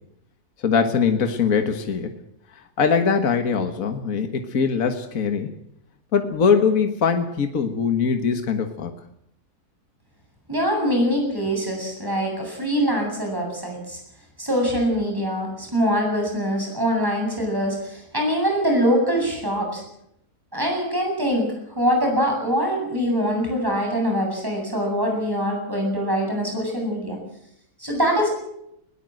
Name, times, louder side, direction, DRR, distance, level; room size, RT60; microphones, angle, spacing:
voice 1, 0.6-2.1 2.5-5.5 6.1-8.9, left 6 dB, 60° left, 6 dB, 1.9 m, -22 dB
voice 2, 10.5-14.0 14.4-19.8 20.5-21.5 21.8-27.2 27.8-28.3, equal, 15° right, 1 dB, 7.9 m, -23 dB
20.5 x 18.0 x 7.8 m, 0.77 s
omnidirectional pair, 1.7 m